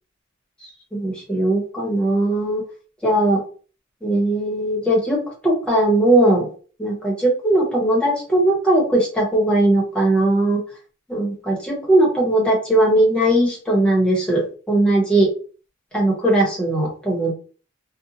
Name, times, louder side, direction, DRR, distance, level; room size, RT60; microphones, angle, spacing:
voice 1, 0.9-2.6 3.0-3.4 4.0-6.5 6.8-10.6 11.1-15.3 15.9-17.3, right 1 dB, 5° left, -4 dB, 1.0 m, -19 dB
2.6 x 2.2 x 2.7 m, 0.39 s
head